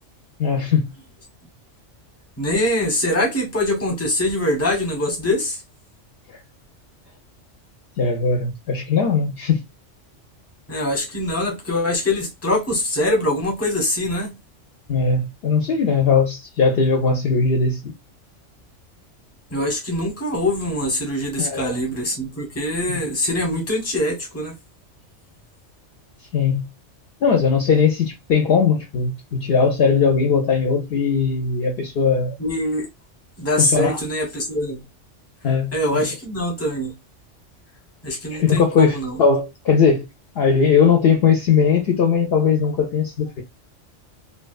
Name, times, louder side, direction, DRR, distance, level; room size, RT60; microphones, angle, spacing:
voice 1, 0.4-0.9 8.0-9.6 14.9-17.8 21.4-21.8 22.9-23.0 26.3-26.6 27.2-32.3 33.6-34.0 35.4-36.1 38.3-40.1 40.4-43.4, left 5 dB, 65° left, 0.7 m, -19 dB
voice 2, 2.4-5.6 10.7-14.3 19.5-24.5 32.4-32.9 33.4-34.8 35.7-36.9 38.0-39.2, left 1 dB, 15° left, 0.8 m, -23 dB
2.6 x 2.2 x 2.2 m
omnidirectional pair, 1.3 m